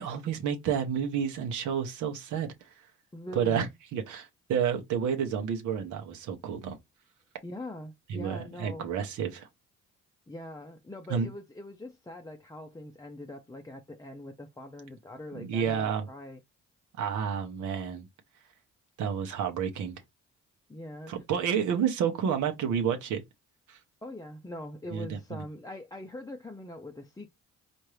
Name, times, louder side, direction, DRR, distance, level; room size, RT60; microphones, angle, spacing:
voice 1, 0.0-2.7 3.3-6.8 8.1-9.5 11.1-11.3 15.3-16.0 17.0-18.1 19.0-19.9 21.1-23.2 23.7-23.8 24.9-25.4, right 7 dB, 80° right, 1.0 m, -30 dB
voice 2, 3.1-3.7 7.4-8.9 10.3-16.4 20.7-21.1 24.0-27.3, left 1 dB, 10° left, 0.5 m, -42 dB
4.4 x 2.6 x 3.2 m
cardioid pair, 90°, 30 cm